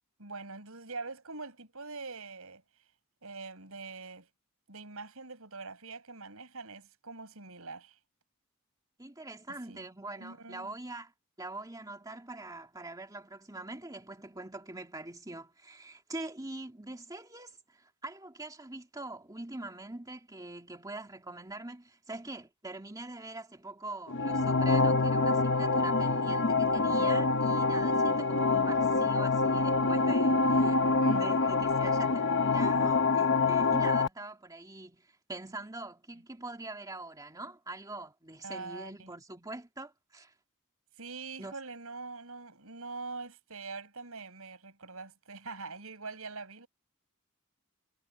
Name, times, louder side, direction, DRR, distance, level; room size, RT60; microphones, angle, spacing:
voice 1, 0.2-2.6 3.2-4.3 4.7-8.0 9.5-9.9 10.2-10.7 29.8-31.2 38.4-39.1 41.0-46.7, right 4 dB, 75° right, 5.9 m, -44 dB
voice 2, 9.0-11.1 11.4-30.8 31.0-40.3 41.4-41.5, right 2 dB, 15° right, 2.6 m, -43 dB
sound 1, 24.1-34.1, left 3 dB, 55° left, 1.0 m, -26 dB
head